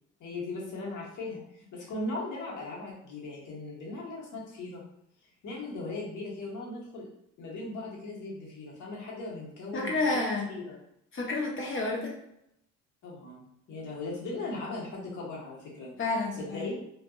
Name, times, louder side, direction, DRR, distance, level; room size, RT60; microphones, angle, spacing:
voice 1, 0.2-4.8 5.4-7.1 7.4-10.2 10.5-10.8 13.0-13.4 13.7-15.9 16.3-16.8, left 2 dB, 55° left, -4 dB, 1.2 m, -38 dB
voice 2, 9.7-10.5 11.1-12.1 16.0-16.7, left 2 dB, 35° left, -2 dB, 0.9 m, -30 dB
2.6 x 2.5 x 2.3 m, 0.78 s
supercardioid pair, 85°, 35 cm